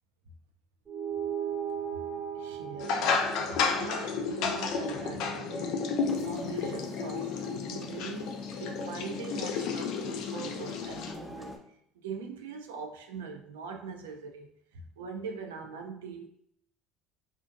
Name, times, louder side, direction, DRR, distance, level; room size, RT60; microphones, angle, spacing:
sound 1, 0.9-5.7, right 8 dB, 30° right, 0.7 m, -38 dB
voice 1, 2.0-16.3, right 5 dB, 85° right, 5 dB, 0.3 m, -42 dB
sound 2, 2.8-11.1, left 5 dB, 65° left, 0.3 m, -32 dB
sound 3, 6.0-11.6, left 1 dB, 10° left, 0.6 m, -47 dB
2.5 x 2.5 x 2.5 m, 0.70 s
hypercardioid pair, 70°, 0 cm